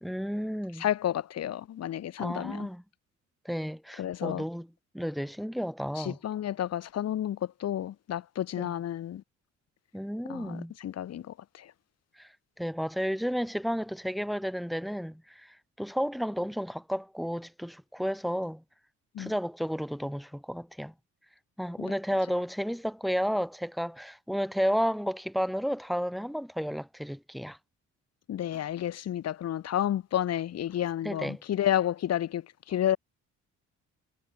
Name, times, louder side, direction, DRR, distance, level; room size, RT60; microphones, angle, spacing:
voice 1, 0.0-0.9 2.2-2.8 3.4-4.7 4.9-6.2 8.6-8.7 9.9-10.7 12.2-12.3 12.6-18.6 19.2-20.9 21.6-27.6 31.0-31.4, equal, ahead, 3.2 m, -32 dB
voice 2, 0.8-2.7 4.0-4.4 6.0-9.2 10.3-11.7 19.1-19.3 21.8-21.9 28.3-33.0, left 11 dB, 55° left, 1.0 m, -31 dB
cardioid pair, 90°, 30 cm